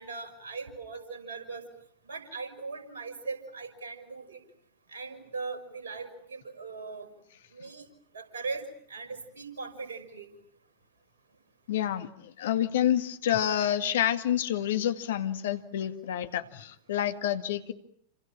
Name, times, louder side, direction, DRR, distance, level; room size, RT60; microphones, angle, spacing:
voice 1, 0.0-1.7 2.1-4.4 4.9-7.1 7.5-7.8 8.1-10.3, right 4 dB, 65° right, 7 dB, 6.0 m, -39 dB
voice 2, 11.7-17.7, left 11 dB, 60° left, 9 dB, 2.0 m, -28 dB
29.0 x 27.5 x 7.4 m, 0.67 s
figure-of-eight pair, 90°, 0 cm